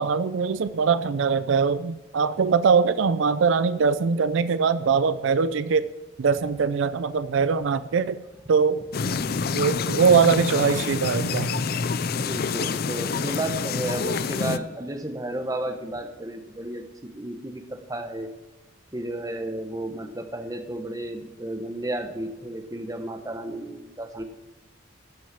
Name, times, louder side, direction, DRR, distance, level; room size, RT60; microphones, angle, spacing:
voice 1, 0.0-5.9 6.2-8.2 8.5-8.8 9.5-11.6, right 5 dB, 75° right, 14 dB, 0.4 m, -22 dB
sound 1, 8.9-14.6, left 5 dB, 50° left, 0.5 m, -27 dB
voice 2, 12.2-18.3 18.9-24.2, right 1 dB, 15° right, 6 dB, 1.0 m, -33 dB
12.5 x 6.4 x 7.5 m, 1.2 s
head